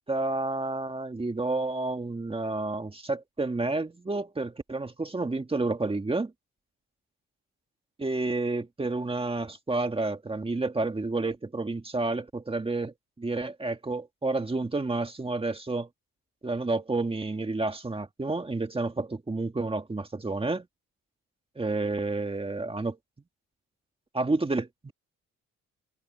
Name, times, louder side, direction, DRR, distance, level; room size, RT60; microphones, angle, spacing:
voice 1, 0.1-6.3 8.0-15.9 16.4-20.6 21.6-23.0 24.1-24.9, right 3 dB, 20° right, 1.9 m, -30 dB
cardioid pair, 90°, 30 cm